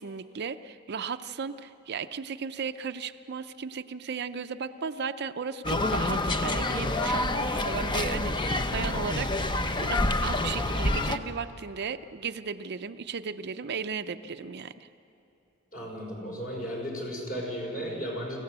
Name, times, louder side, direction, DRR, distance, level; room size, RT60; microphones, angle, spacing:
voice 1, 0.0-14.9, right 5 dB, 55° right, 10 dB, 0.5 m, -35 dB
sound 1, 5.6-11.2, left 2 dB, 25° left, 0.8 m, -27 dB
voice 2, 15.7-18.4, equal, 45° left, -2 dB, 5.7 m, -35 dB
25.5 x 15.5 x 8.1 m, 2.8 s
head